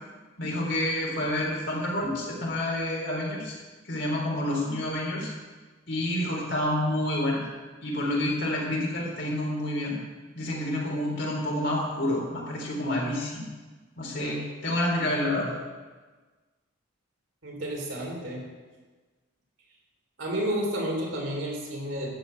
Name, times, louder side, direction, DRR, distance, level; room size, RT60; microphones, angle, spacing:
voice 1, 0.4-3.5 3.9-5.3 5.9-7.5 7.8-10.0 10.3-13.4 14.0-15.6, left 1 dB, 60° left, -2 dB, 3.8 m, -28 dB
voice 2, 17.4-18.4 20.2-22.1, equal, 70° right, -1 dB, 3.8 m, -31 dB
12.5 x 7.0 x 7.9 m, 1.3 s
head